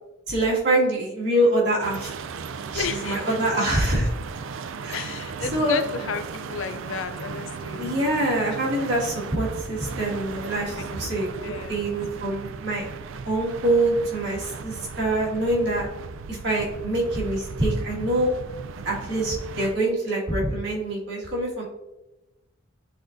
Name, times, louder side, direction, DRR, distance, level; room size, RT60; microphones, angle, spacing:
voice 1, 0.3-2.1 2.7-4.1 4.8-5.1 5.5-5.8 7.8-11.3 11.7-12.9 13.2-15.9 16.3-18.3 18.8-21.6, right 1 dB, 55° right, -5 dB, 1.8 m, -25 dB
sound 1, 1.8-19.8, right 5 dB, 70° right, 0.4 m, -37 dB
voice 2, 2.8-3.6 4.9-8.0 10.8-10.9 11.4-11.8 16.5-16.8, left 5 dB, 70° left, 10 dB, 0.4 m, -33 dB
10.5 x 3.9 x 2.6 m, 1.0 s
head